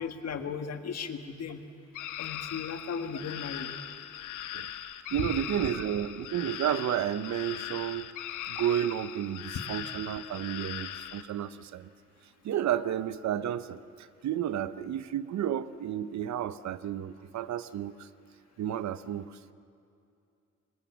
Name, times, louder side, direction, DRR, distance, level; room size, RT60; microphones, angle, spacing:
voice 1, 0.0-1.6 2.2-3.7 5.2-5.3, left 6 dB, 55° left, 6 dB, 1.7 m, -36 dB
sound 1, 1.9-11.2, left 11 dB, 85° left, 1.0 m, -40 dB
voice 2, 5.1-8.1 8.5-11.9 12.4-18.1 18.6-19.4, right 10 dB, 65° right, 14 dB, 0.8 m, -32 dB
23.5 x 20.0 x 7.1 m, 2.5 s
cardioid pair, 90°, 30 cm